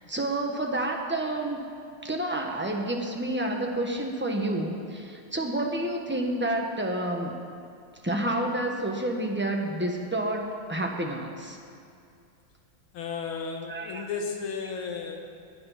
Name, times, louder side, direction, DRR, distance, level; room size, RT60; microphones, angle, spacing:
voice 1, 0.1-1.6 2.0-7.4 8.0-11.6 13.7-14.1, right 1 dB, 10° right, 1 dB, 0.9 m, -29 dB
voice 2, 12.9-15.2, left 5 dB, 85° left, 3 dB, 2.2 m, -34 dB
18.5 x 9.9 x 5.8 m, 2.4 s
omnidirectional pair, 2.2 m